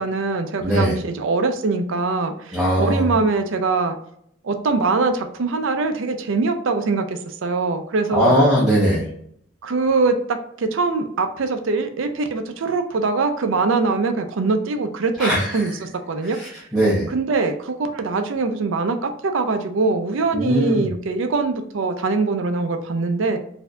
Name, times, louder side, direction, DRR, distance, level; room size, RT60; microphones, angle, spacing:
voice 1, 0.0-4.0 4.4-8.4 9.6-16.7 17.1-23.4, right 3 dB, 65° right, 7 dB, 0.4 m, -23 dB
voice 2, 0.6-0.9 2.5-3.1 8.1-9.0 15.2-15.6 16.3-17.1 20.3-20.9, equal, 5° right, -8 dB, 0.8 m, -19 dB
4.4 x 2.6 x 2.3 m, 0.69 s
head